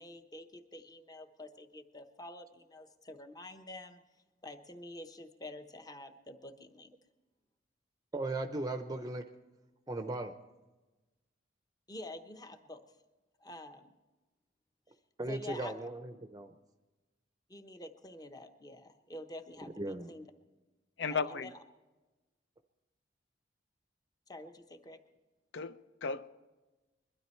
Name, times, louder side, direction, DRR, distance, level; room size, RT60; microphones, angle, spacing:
voice 1, 0.0-4.0 4.4-6.9 11.9-12.8 13.4-14.0 15.3-15.7 17.5-20.3 21.1-21.6 24.3-25.0, left 1 dB, 20° left, 0.9 m, -48 dB
voice 2, 8.1-9.2 9.9-10.3 15.2-16.5 19.8-20.1, right 2 dB, 20° right, 0.6 m, -37 dB
voice 3, 21.0-21.5 25.5-26.3, left 5 dB, 65° left, 0.6 m, -35 dB
21.5 x 13.0 x 4.4 m
head